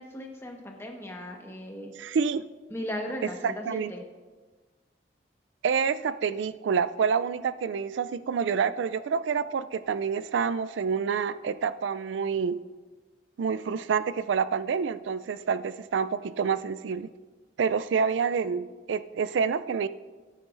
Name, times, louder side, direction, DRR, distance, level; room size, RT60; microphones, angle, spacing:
voice 1, 0.0-1.9 2.7-4.0, equal, 15° left, 1 dB, 1.3 m, -37 dB
voice 2, 2.0-2.4 3.4-3.9 5.6-12.6 13.4-17.1 17.6-19.9, right 6 dB, 90° right, 15 dB, 0.4 m, -28 dB
17.0 x 9.3 x 2.5 m, 1.3 s
head